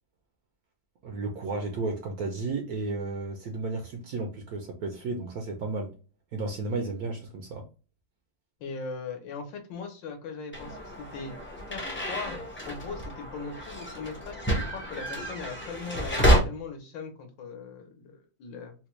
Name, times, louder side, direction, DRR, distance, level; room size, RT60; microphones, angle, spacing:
voice 1, 1.0-5.9 6.3-7.7, right 3 dB, 70° right, 0.9 m, -33 dB
voice 2, 8.6-11.4 11.7-18.7, left 4 dB, 75° left, 1.5 m, -39 dB
sound 1, 10.5-16.4, equal, 15° left, 0.4 m, -29 dB
4.2 x 2.2 x 3.0 m
omnidirectional pair, 2.1 m